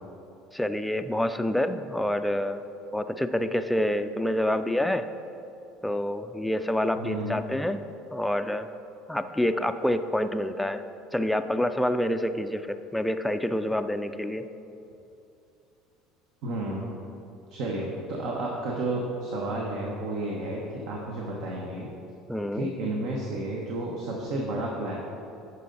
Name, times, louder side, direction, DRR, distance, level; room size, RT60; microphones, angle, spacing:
voice 1, 0.5-2.6 2.9-5.1 5.8-7.8 8.1-8.7 9.1-10.8 11.1-14.4 22.3-22.7, left 1 dB, 5° left, 8 dB, 0.3 m, -27 dB
voice 2, 7.0-7.4 16.4-16.9 17.5-21.9 22.5-25.0, right 2 dB, 70° right, -1 dB, 1.0 m, -31 dB
9.3 x 5.6 x 3.9 m, 2.7 s
supercardioid pair, 105°, 0 cm